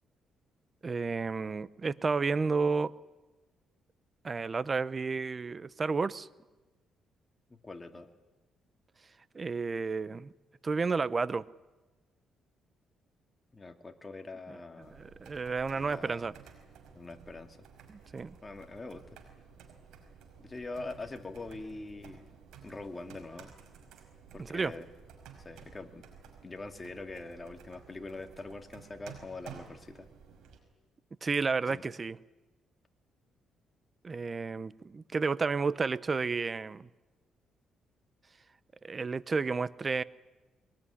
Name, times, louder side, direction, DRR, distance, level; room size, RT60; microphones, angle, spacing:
voice 1, 0.8-2.9 4.2-6.3 9.3-10.3 10.6-11.4 14.9-16.3 17.9-18.3 24.4-24.7 31.2-32.2 34.0-36.9 38.8-40.0, right 4 dB, 35° right, 0.7 m, -31 dB
voice 2, 7.6-8.1 13.5-15.0 15.7-16.4 16.9-17.6 18.4-19.0 20.4-22.3 22.6-23.5 24.3-24.9 25.4-26.1 26.4-30.1 31.7-31.9, left 3 dB, 25° left, 2.3 m, -43 dB
sound 1, 14.8-30.6, right 7 dB, 85° right, 5.2 m, -53 dB
22.5 x 19.5 x 10.0 m
cardioid pair, 90°, 0 cm